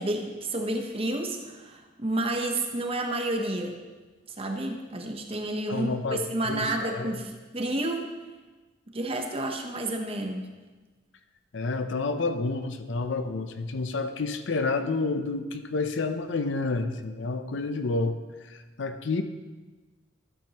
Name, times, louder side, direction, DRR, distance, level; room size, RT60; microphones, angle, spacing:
voice 1, 0.0-3.8 4.4-8.0 8.9-10.4, right 1 dB, 30° right, 3 dB, 0.9 m, -30 dB
voice 2, 5.7-7.2 11.5-18.2 18.5-19.2, left 3 dB, 65° left, 8 dB, 0.6 m, -29 dB
12.5 x 8.5 x 3.0 m, 1.3 s
head